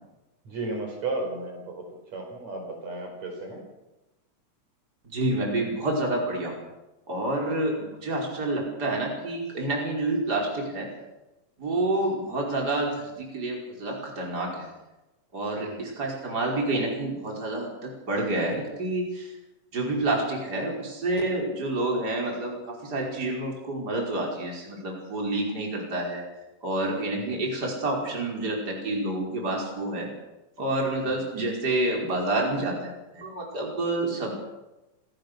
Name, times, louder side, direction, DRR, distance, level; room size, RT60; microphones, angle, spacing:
voice 1, 0.5-1.8 2.1-3.6 7.5-7.7 15.6-15.9 27.2-27.4 31.0-31.3, right 2 dB, 60° right, 2 dB, 5.8 m, -34 dB
voice 2, 5.1-6.6 7.1-7.8 8.0-10.9 11.6-14.7 15.3-19.3 19.7-26.2 26.6-30.1 30.6-34.3, right 2 dB, 30° right, -1 dB, 5.6 m, -28 dB
28.0 x 18.0 x 6.8 m, 1.0 s
omnidirectional pair, 3.6 m